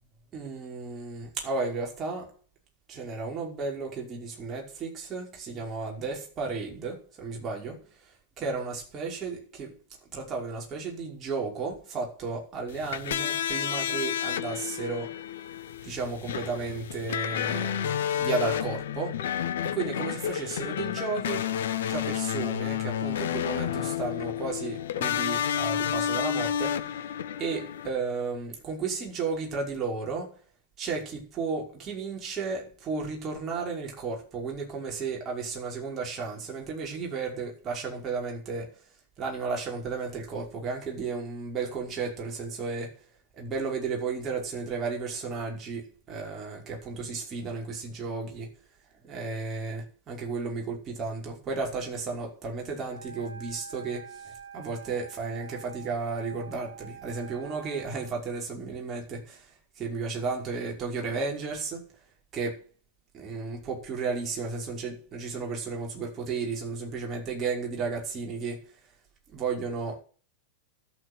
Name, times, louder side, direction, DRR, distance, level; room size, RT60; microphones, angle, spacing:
voice 1, 0.3-2.3 2.9-9.8 10.1-15.1 15.8-19.3 19.6-21.6 21.9-27.0 27.4-30.4 30.8-38.8 39.2-43.1 43.3-48.6 49.0-61.9 62.3-62.6 63.1-68.7 69.3-70.0, right 4 dB, 25° right, 5.4 m, -33 dB
sound 1, 12.7-27.9, left 9 dB, 60° left, 1.1 m, -30 dB
Wind instrument woodwind instrument, 52.8-58.1, right 6 dB, 80° right, 2.4 m, -46 dB
12.0 x 8.0 x 8.4 m
figure-of-eight pair, 90°, 0 cm